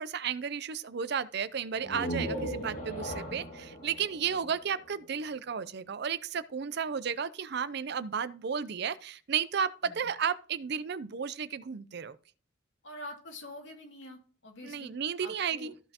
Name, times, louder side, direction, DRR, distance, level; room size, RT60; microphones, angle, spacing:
voice 1, 0.0-12.2 14.6-15.9, right 7 dB, 60° right, 0.5 m, -33 dB
sound 1, 1.7-5.4, equal, 45° left, 2.0 m, -38 dB
voice 2, 3.1-3.4 4.4-4.5 9.8-10.1 12.8-14.9 15.2-15.7, left 1 dB, 75° left, 2.3 m, -46 dB
14.0 x 5.5 x 2.9 m
head